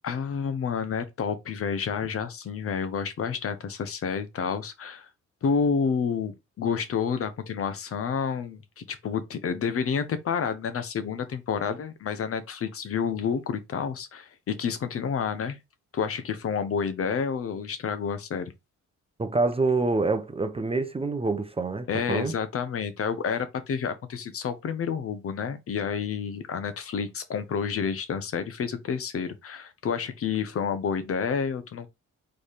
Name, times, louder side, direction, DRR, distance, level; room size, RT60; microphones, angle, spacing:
voice 1, 0.0-5.1 5.4-15.6 15.9-18.5 21.9-31.9, left 6 dB, 50° left, 0.8 m, -29 dB
voice 2, 19.2-22.3, right 3 dB, 20° right, 0.6 m, -26 dB
4.1 x 3.3 x 3.5 m
cardioid pair, 90°, 30 cm